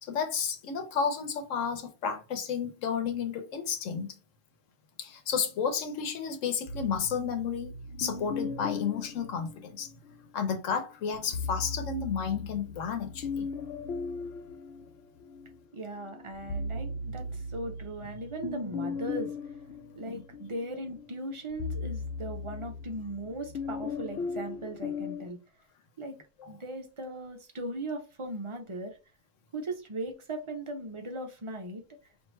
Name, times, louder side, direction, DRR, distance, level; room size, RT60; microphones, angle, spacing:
voice 1, 0.0-4.1 5.0-7.7 8.0-9.9 10.3-13.4 20.1-20.2 26.4-26.5, left 6 dB, 90° left, 1.1 m, -32 dB
sound 1, 6.7-10.2 11.1-15.6 16.0-25.3, left 4 dB, 65° left, 0.8 m, -38 dB
voice 2, 15.7-19.3 19.9-25.4 26.0-26.2 26.5-29.0 29.5-31.8, right 1 dB, 35° right, 0.6 m, -38 dB
4.4 x 2.5 x 3.2 m
omnidirectional pair, 1.3 m